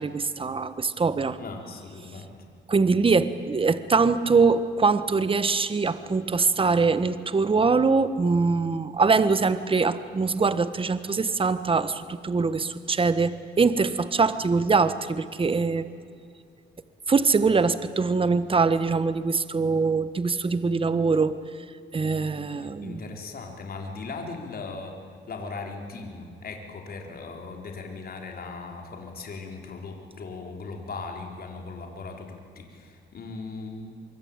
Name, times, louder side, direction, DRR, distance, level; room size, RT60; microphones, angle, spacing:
voice 1, 0.0-1.4 2.7-15.9 17.1-21.4 21.9-23.0, right 4 dB, 25° right, 13 dB, 1.3 m, -23 dB
voice 2, 1.4-2.4 22.6-25.0 25.3-33.9, left 4 dB, 50° left, 2 dB, 4.4 m, -38 dB
24.5 x 23.5 x 9.0 m, 2.4 s
cardioid pair, 90°, 20 cm